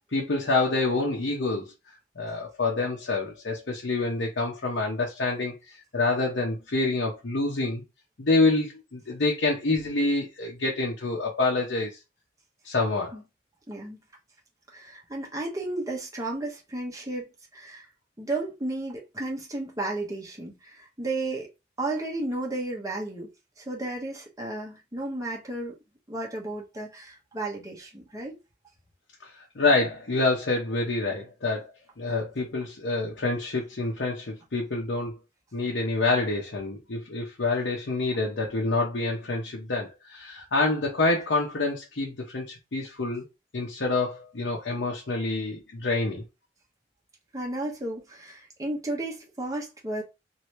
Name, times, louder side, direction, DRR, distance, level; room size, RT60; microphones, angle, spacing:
voice 1, 0.1-1.7 2.2-7.8 8.2-12.0 12.6-13.2 29.2-31.7 32.0-35.2 35.5-43.2 43.5-46.2, left 3 dB, 80° left, 0.8 m, -27 dB
voice 2, 13.7-14.0 14.7-17.8 18.2-21.5 21.8-23.3 23.6-25.8 26.1-28.4 47.3-50.0, right 2 dB, 20° right, 1.0 m, -33 dB
3.0 x 2.7 x 3.1 m
head